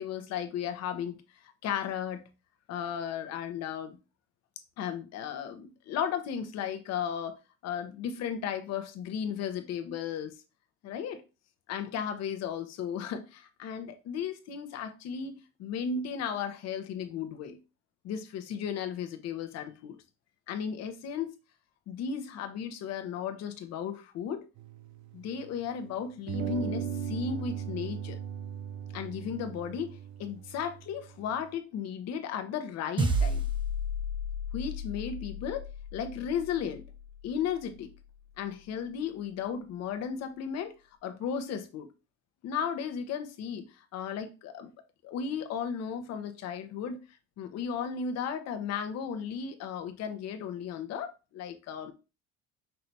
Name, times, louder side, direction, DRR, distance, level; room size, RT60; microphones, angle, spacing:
voice 1, 0.0-2.2 2.7-4.0 4.8-10.3 10.8-11.2 11.7-17.6 18.0-20.0 20.5-21.3 21.9-24.4 25.1-28.2 28.9-33.4 34.5-35.6 35.9-36.8 37.2-37.9 38.4-40.7 41.0-41.9 42.4-44.7 45.0-47.0 47.4-51.9, left 7 dB, 60° left, 0.9 m, -35 dB
sound 1, 24.6-25.8 26.3-31.5, right 8 dB, 75° right, 0.6 m, -38 dB
sound 2, 33.0-37.6, equal, 15° right, 0.6 m, -33 dB
5.6 x 3.3 x 2.7 m
cardioid pair, 125°, 30 cm